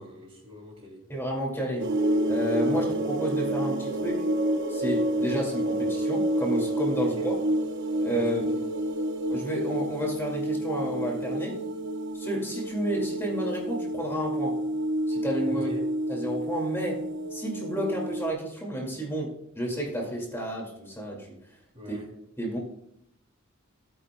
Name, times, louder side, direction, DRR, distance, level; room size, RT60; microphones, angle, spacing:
voice 1, 0.0-1.0 2.6-2.9 7.1-7.3 8.1-8.6 15.5-15.8 21.7-22.1, left 1 dB, 30° right, 0 dB, 2.7 m, -43 dB
voice 2, 1.1-1.9 2.3-4.3 4.7-7.3 8.0-8.5 9.3-11.6 12.1-14.6 15.1-15.7 16.1-17.1 17.3-21.3 21.9-22.0 22.4-22.6, right 1 dB, 10° left, -1 dB, 2.1 m, -31 dB
sound 1, 1.8-18.3, right 1 dB, 60° right, 0.8 m, -29 dB
16.0 x 9.5 x 2.2 m, 0.76 s
head